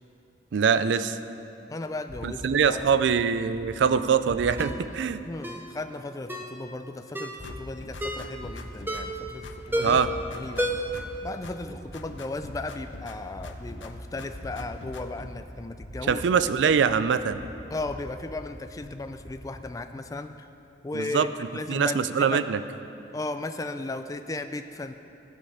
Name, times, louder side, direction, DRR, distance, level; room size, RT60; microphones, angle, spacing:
voice 1, 0.5-1.2 2.2-5.2 9.8-10.1 16.1-17.4 20.9-21.3 21.7-22.6, right 6 dB, 75° right, 13 dB, 0.4 m, -23 dB
voice 2, 1.7-2.8 5.2-10.0 10.3-10.9 11.2-16.2 17.7-20.5 20.8-22.4 23.1-24.9, left 2 dB, 20° left, 8 dB, 0.3 m, -36 dB
sound 1, 2.1-4.9 7.3-19.6, equal, 65° left, 2.3 m, -44 dB
Ringtone, 4.6-4.8 5.4-5.7 6.3-6.5 7.1-7.4 8.0-8.3 8.9-9.2 9.7-10.1 10.6-11.0 11.3-11.4, equal, 10° right, 0.7 m, -30 dB
sound 2, 7.4-9.2 9.4-11.2 11.4-13.2 13.4-15.3, left 3 dB, 90° left, 0.7 m, -44 dB
16.0 x 5.5 x 5.0 m, 2.8 s
head